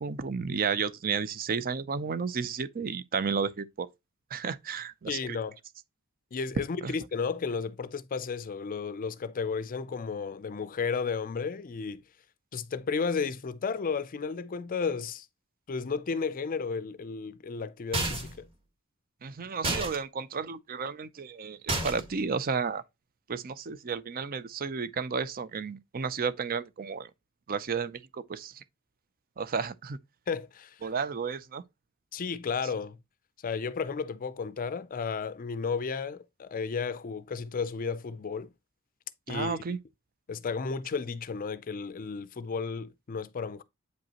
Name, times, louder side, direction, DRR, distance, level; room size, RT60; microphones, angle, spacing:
voice 1, 0.0-3.9 4.3-5.4 6.8-7.0 19.2-22.8 23.3-27.1 27.5-28.6 29.4-30.0 30.8-31.6 39.3-39.8, right 5 dB, 45° right, 0.5 m, -32 dB
voice 2, 5.1-5.6 6.3-12.0 12.5-15.3 15.7-18.5 30.3-30.7 32.1-33.0 33.4-38.5 39.3-39.6 40.3-43.6, left 5 dB, 40° left, 0.4 m, -33 dB
sound 1, 17.9-18.4 19.6-20.0 21.7-22.2, right 2 dB, 25° right, 1.7 m, -30 dB
8.2 x 5.2 x 2.9 m
head